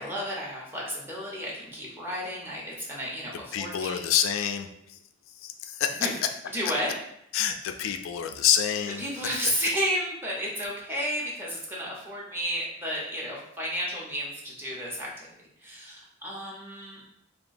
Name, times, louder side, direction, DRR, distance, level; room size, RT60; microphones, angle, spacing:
voice 1, 0.0-4.0 6.0-6.1 6.5-6.9 9.0-15.3 15.6-17.0, equal, 10° right, -4 dB, 0.6 m, -32 dB
voice 2, 3.5-5.0 5.4-6.1 7.3-9.0, left 9 dB, 85° left, 7 dB, 0.3 m, -27 dB
2.9 x 2.2 x 2.5 m, 0.75 s
head